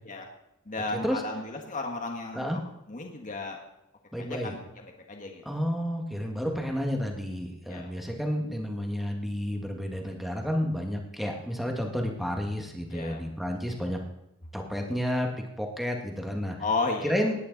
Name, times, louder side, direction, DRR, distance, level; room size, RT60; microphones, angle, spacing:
voice 1, 0.6-2.6 2.9-3.6 4.2-5.6 7.7-7.9 12.9-13.2 16.6-17.3, left 3 dB, 35° left, 2 dB, 1.6 m, -34 dB
voice 2, 4.1-4.5 5.5-14.0 14.5-15.3 15.6-16.6 17.0-17.3, equal, ahead, 1 dB, 1.9 m, -31 dB
18.0 x 10.0 x 4.1 m, 0.86 s
head